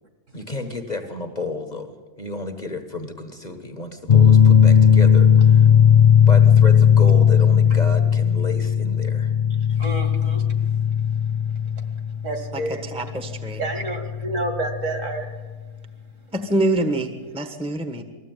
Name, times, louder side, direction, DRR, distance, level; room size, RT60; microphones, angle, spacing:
voice 1, 0.3-5.7 6.3-9.3, left 2 dB, 30° left, 5 dB, 1.4 m, -32 dB
sound 1, 4.1-15.3, left 8 dB, 45° left, 0.5 m, -16 dB
voice 2, 9.7-10.4 12.2-12.8 13.6-15.3, right 2 dB, 55° right, 4 dB, 2.8 m, -29 dB
voice 3, 12.5-13.6 16.3-18.0, right 1 dB, 5° right, 7 dB, 1.2 m, -25 dB
21.0 x 15.0 x 9.2 m, 1.3 s
omnidirectional pair, 1.6 m